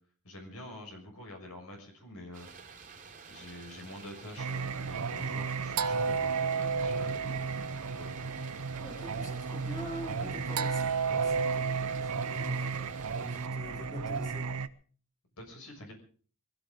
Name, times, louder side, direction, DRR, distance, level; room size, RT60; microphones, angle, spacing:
voice 1, 0.2-2.5 3.3-7.6 7.9-8.1 15.4-15.9, left 1 dB, 75° left, 6.5 m, -47 dB
sound 1, 2.3-13.5, right 5 dB, 35° right, 4.0 m, -50 dB
Singing, 4.4-14.7, right 5 dB, 80° right, 0.8 m, -33 dB
voice 2, 8.8-14.6, equal, 15° left, 4.1 m, -44 dB
23.0 x 16.0 x 3.7 m
head